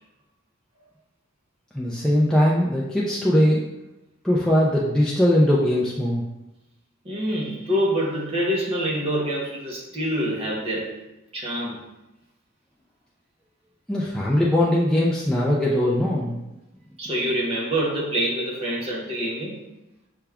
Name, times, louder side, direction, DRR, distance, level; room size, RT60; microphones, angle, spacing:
voice 1, 1.7-3.6 4.2-6.2 13.9-16.4, left 1 dB, 5° left, -6 dB, 0.3 m, -20 dB
voice 2, 7.0-10.9 11.3-11.8 17.0-19.6, equal, 25° right, -4 dB, 0.8 m, -26 dB
5.7 x 2.3 x 3.4 m, 0.95 s
head